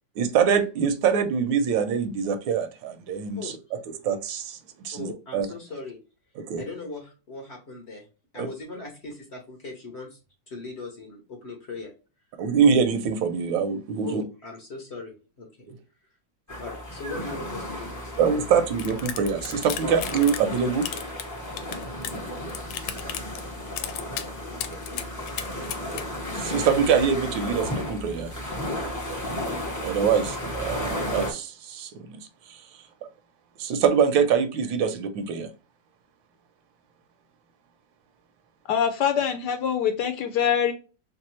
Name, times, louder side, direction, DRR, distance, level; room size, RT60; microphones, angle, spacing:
voice 1, 0.2-3.5 4.0-5.5 6.4-6.6 8.4-8.5 12.4-14.2 18.2-20.9 26.3-28.3 29.8-32.8 33.6-35.5, right 6 dB, 80° right, 1.3 m, -24 dB
voice 2, 4.9-6.0 6.6-8.1 8.3-10.2 10.5-11.9 14.0-15.7 16.6-18.1 19.8-20.0, left 3 dB, 45° left, 0.9 m, -39 dB
sound 1, 16.5-31.3, left 1 dB, 20° left, 0.5 m, -34 dB
sound 2, 18.8-20.5 20.8-22.2 22.5-23.5 23.8-24.3 24.6-26.0, left 10 dB, 90° left, 1.3 m, -34 dB
voice 3, 38.7-40.7, left 8 dB, 70° left, 1.0 m, -24 dB
3.3 x 3.3 x 3.0 m
omnidirectional pair, 2.1 m